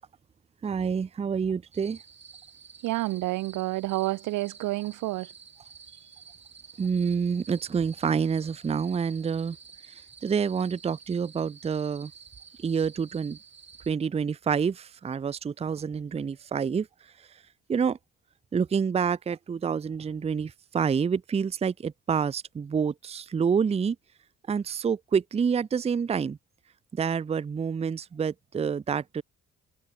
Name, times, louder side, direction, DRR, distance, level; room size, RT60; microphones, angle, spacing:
voice 1, 0.6-2.0 6.8-9.6 10.2-12.1 12.6-13.4 13.9-16.9 17.7-18.0 18.5-24.0 24.5-26.4 26.9-29.2, right 6 dB, 20° right, 0.5 m, -27 dB
sound 1, 1.7-13.9, right 6 dB, 40° right, 4.3 m, -51 dB
voice 2, 2.8-5.3, right 18 dB, 85° right, 0.7 m, -29 dB
cardioid pair, 90°, 30 cm